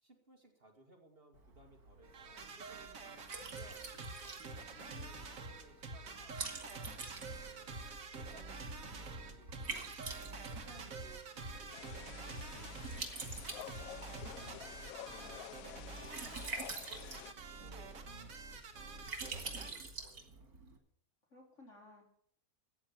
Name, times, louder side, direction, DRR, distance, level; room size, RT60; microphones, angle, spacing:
voice 1, 0.0-3.9 4.7-7.8 8.1-9.9 10.5-14.6 15.3-20.5, right 2 dB, 40° right, 3 dB, 2.2 m, -63 dB
Liquid, 1.3-20.8, right 3 dB, 90° right, 2.7 m, -48 dB
sound 1, 2.0-19.7, right 3 dB, 65° right, 1.8 m, -47 dB
voice 2, 4.8-5.1 15.1-15.7 21.3-22.1, left 2 dB, 50° left, 0 dB, 4.0 m, -59 dB
sound 2, 11.7-17.3, left 10 dB, 70° left, 1.1 m, -50 dB
14.0 x 8.9 x 7.2 m, 0.66 s
omnidirectional pair, 1.6 m